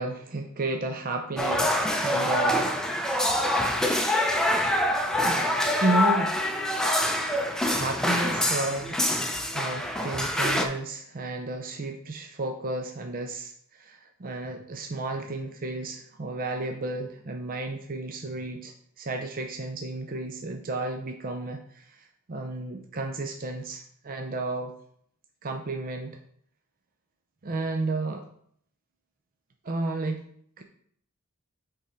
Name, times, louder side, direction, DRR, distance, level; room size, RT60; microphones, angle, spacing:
voice 1, 0.0-2.7 5.2-5.4 5.8-6.3 7.7-9.0 9.5-24.7 25.4-26.2 27.4-28.3 29.6-30.2 30.6-30.7, right 2 dB, 40° right, 4 dB, 0.6 m, -32 dB
sound 1, 1.4-10.7, left 1 dB, 5° left, 0.6 m, -25 dB
8.5 x 3.8 x 4.3 m, 0.65 s
head